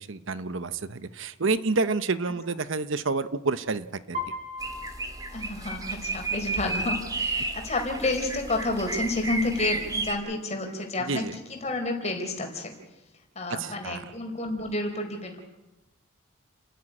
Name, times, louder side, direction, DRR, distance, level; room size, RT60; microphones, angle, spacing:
voice 1, 0.0-4.2 11.1-11.3 13.6-14.0, right 3 dB, 65° right, 13 dB, 0.9 m, -29 dB
Piano, 4.1-6.2, left 2 dB, 35° right, 3.4 m, -38 dB
sound 1, 4.6-10.1, right 3 dB, 20° right, 1.9 m, -32 dB
voice 2, 5.3-12.7 13.3-15.4, left 2 dB, 35° left, 4 dB, 4.3 m, -30 dB
30.0 x 10.5 x 9.9 m, 1.0 s
head